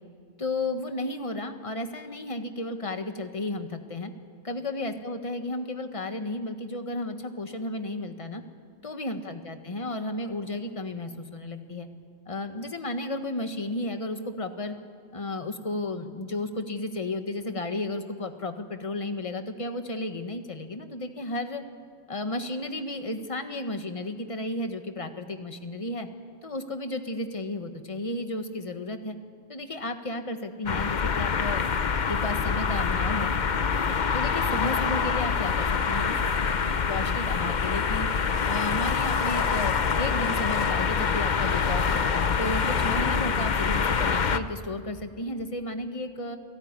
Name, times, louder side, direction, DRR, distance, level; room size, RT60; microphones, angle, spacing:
voice 1, 0.4-4.1 4.4-8.4 8.8-11.9 12.3-14.7 15.1-21.6 22.1-26.1 26.4-29.2 29.5-31.6 32.1-33.3 34.1-36.2 36.9-38.1 38.4-42.0 42.4-46.4, left 2 dB, 30° left, 7 dB, 1.6 m, -33 dB
sound 1, 30.7-44.4, left 5 dB, 45° left, 0.9 m, -25 dB
28.5 x 17.5 x 9.7 m, 2.1 s
omnidirectional pair, 1.2 m